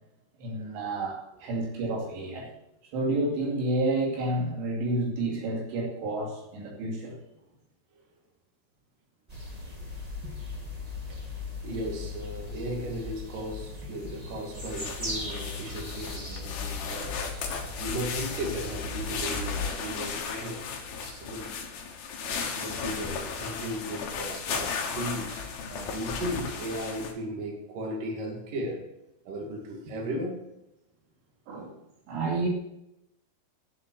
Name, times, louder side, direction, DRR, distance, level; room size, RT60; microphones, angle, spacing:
voice 1, 0.4-2.5 2.9-7.2 31.5-31.7 32.1-32.5, right 2 dB, 90° right, -1 dB, 4.8 m, -30 dB
sound 1, 9.3-19.7, left 3 dB, 30° right, 0.6 m, -38 dB
voice 2, 10.2-10.7 11.1-11.2 11.6-17.3 17.8-21.5 22.2-28.9 29.3-30.5, right 1 dB, 55° right, 0 dB, 3.7 m, -36 dB
sound 2, 14.6-27.1, left 5 dB, 65° left, 3.2 m, -35 dB
10.5 x 7.6 x 8.1 m, 0.86 s
omnidirectional pair, 4.9 m